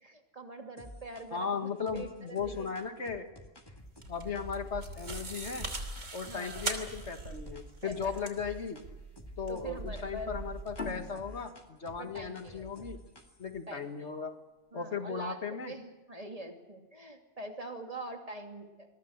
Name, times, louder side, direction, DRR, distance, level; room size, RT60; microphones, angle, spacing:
voice 1, 0.0-2.9 6.3-6.7 7.8-8.2 9.5-10.3 11.1-11.2 12.0-12.9 13.7-14.1 14.7-15.4 15.7-18.9, right 2 dB, 30° right, 3 dB, 2.9 m, -44 dB
sound 1, 0.8-1.5 1.9-7.1 7.5-8.9 9.2-13.6, equal, 20° left, 2.1 m, -50 dB
voice 2, 1.3-3.3 4.1-5.7 6.1-8.9 9.4-13.0 13.4-14.4 14.7-15.7, left 5 dB, 70° left, 6 dB, 2.2 m, -37 dB
sound 2, 3.8-11.1, right 2 dB, 90° right, 3.3 m, -42 dB
sound 3, 10.8-14.0, left 5 dB, 50° left, 2.4 m, -44 dB
26.5 x 21.5 x 6.6 m, 1.1 s
omnidirectional pair, 1.2 m